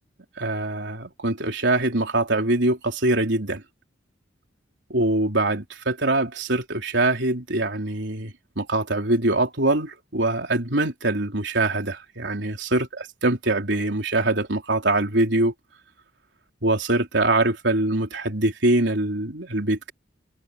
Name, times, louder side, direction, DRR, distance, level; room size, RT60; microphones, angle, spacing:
voice 1, 0.4-3.6 4.9-15.5 16.6-19.9, right 2 dB, 70° right, 3.9 m, -23 dB
head